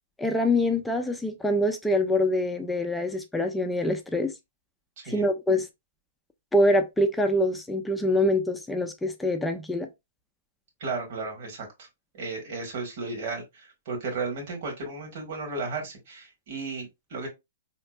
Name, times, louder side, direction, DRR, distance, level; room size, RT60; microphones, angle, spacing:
voice 1, 0.2-4.3 5.1-5.7 6.5-9.9, left 1 dB, 5° left, 0.5 m, -25 dB
voice 2, 5.0-5.3 10.8-11.9 12.2-17.3, right 3 dB, 55° right, 1.6 m, -34 dB
4.2 x 2.9 x 2.4 m
hypercardioid pair, 115°, 0 cm